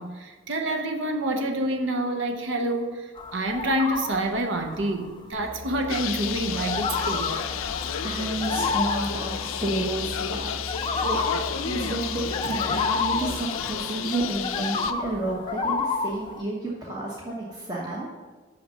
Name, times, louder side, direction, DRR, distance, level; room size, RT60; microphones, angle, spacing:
voice 1, 0.0-7.3, right 1 dB, 60° right, 5 dB, 0.7 m, -27 dB
sound 1, 3.2-5.1 5.5-5.8 6.3-10.4 10.7-16.4, left 4 dB, 25° left, 0.5 m, -30 dB
Musical instrument, 5.3-13.3, left 1 dB, 45° right, 2.0 m, -39 dB
Bird, 5.9-14.9, left 8 dB, 80° left, 0.4 m, -32 dB
voice 2, 8.0-11.2 11.6-18.1, right 2 dB, 20° right, -5 dB, 1.0 m, -31 dB
6.5 x 5.6 x 6.5 m, 1.4 s
head